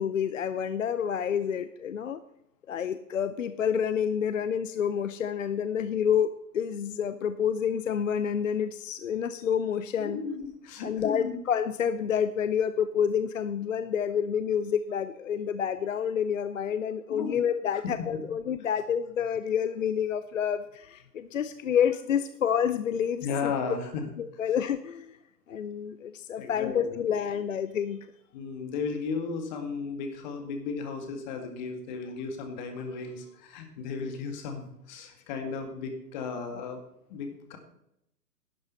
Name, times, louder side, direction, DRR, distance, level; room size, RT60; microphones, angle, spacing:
voice 1, 0.0-2.2 2.7-10.2 10.8-23.5 24.2-25.2 25.5-28.0, left 8 dB, 50° left, 12 dB, 0.6 m, -28 dB
voice 2, 10.0-11.4 17.1-17.4 23.2-24.1 26.4-26.9 28.3-36.8 37.1-37.6, left 5 dB, 25° left, 5 dB, 2.0 m, -35 dB
11.5 x 8.0 x 5.4 m, 0.80 s
figure-of-eight pair, 140°, 50 cm